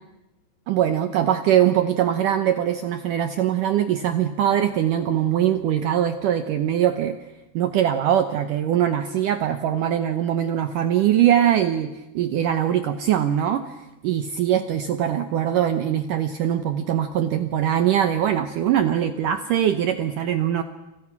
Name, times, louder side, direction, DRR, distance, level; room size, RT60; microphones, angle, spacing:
voice 1, 0.7-7.2 7.5-13.8 14.0-20.6, right 10 dB, 70° right, 9 dB, 2.0 m, -22 dB
29.5 x 29.0 x 6.0 m, 1.0 s
omnidirectional pair, 4.9 m